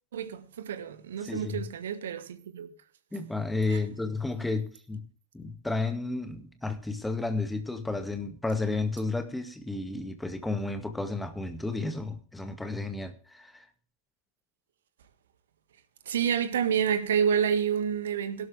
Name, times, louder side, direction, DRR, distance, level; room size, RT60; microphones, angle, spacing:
voice 1, 0.1-2.7 3.7-3.8 16.1-18.5, right 8 dB, 60° right, 1.6 m, -28 dB
voice 2, 1.2-1.6 3.1-5.1 5.3-13.6, left 3 dB, 5° left, 2.0 m, -32 dB
17.0 x 12.0 x 3.4 m
figure-of-eight pair, 90°, 0 cm